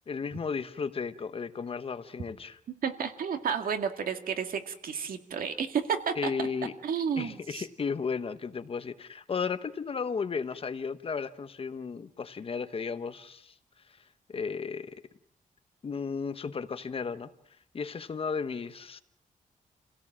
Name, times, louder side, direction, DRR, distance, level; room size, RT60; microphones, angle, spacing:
voice 1, 0.1-2.6 6.2-6.7 7.2-13.5 14.3-14.9 15.8-17.3 17.7-19.0, left 5 dB, 40° left, 11 dB, 1.1 m, -34 dB
voice 2, 2.8-6.5 6.8-7.6, right 7 dB, 80° right, 7 dB, 2.2 m, -31 dB
28.5 x 17.0 x 7.5 m, 0.70 s
wide cardioid pair, 155°, 15 cm